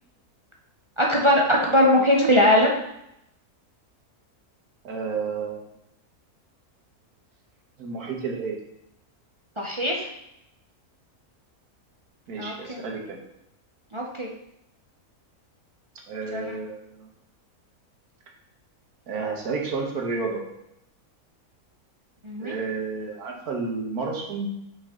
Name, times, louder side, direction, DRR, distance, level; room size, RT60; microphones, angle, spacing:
voice 1, 1.0-2.7 9.6-10.1 12.4-12.8 13.9-14.3 16.3-16.5 22.2-22.5, left 1 dB, 35° right, -2 dB, 0.5 m, -21 dB
voice 2, 4.8-5.7 7.8-8.6 12.3-13.2 16.1-17.1 19.1-20.4 22.4-24.6, right 4 dB, 80° right, 1 dB, 1.6 m, -31 dB
5.4 x 5.1 x 3.7 m, 0.81 s
omnidirectional pair, 1.6 m